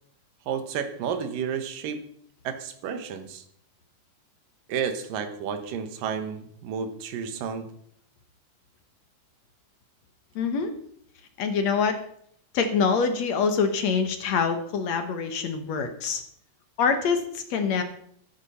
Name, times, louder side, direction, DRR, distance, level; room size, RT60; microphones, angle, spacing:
voice 1, 0.5-2.0 2.4-3.4 4.7-7.7, right 7 dB, 85° right, 9 dB, 2.9 m, -31 dB
voice 2, 10.4-10.8 11.4-12.0 12.5-16.2 16.8-17.8, left 5 dB, 60° left, 7 dB, 2.2 m, -25 dB
14.0 x 11.0 x 5.7 m, 0.66 s
omnidirectional pair, 3.8 m